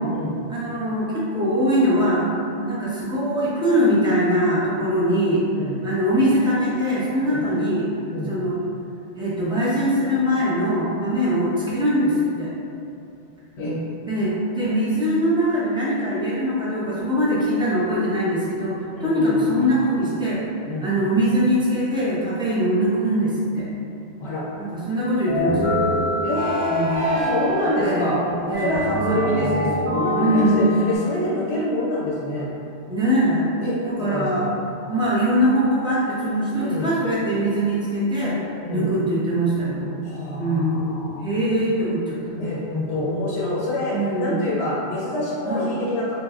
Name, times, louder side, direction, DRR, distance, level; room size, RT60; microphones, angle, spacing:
voice 1, 0.5-2.3 2.6-5.4 5.8-7.9 8.3-8.6 9.2-12.5 14.1-20.5 20.8-23.7 24.6-25.9 26.7-27.0 27.8-28.1 28.5-29.2 30.1-30.7 32.9-33.5 33.8-34.5 34.9-39.9 40.4-42.3 43.0-43.1 43.9-44.4 45.4-45.7, equal, 5° right, -8 dB, 0.4 m, -22 dB
voice 2, 19.0-19.7 20.7-20.9 24.2-24.4 26.2-28.2 28.6-32.5 33.6-34.5 36.6-36.9 38.6-38.9 40.0-41.2 42.3-46.1, left 1 dB, 75° left, -6 dB, 0.9 m, -26 dB
sound 1, 25.3-31.0, equal, 85° right, 1.2 m, -25 dB
3.1 x 2.1 x 3.4 m, 2.6 s
omnidirectional pair, 1.1 m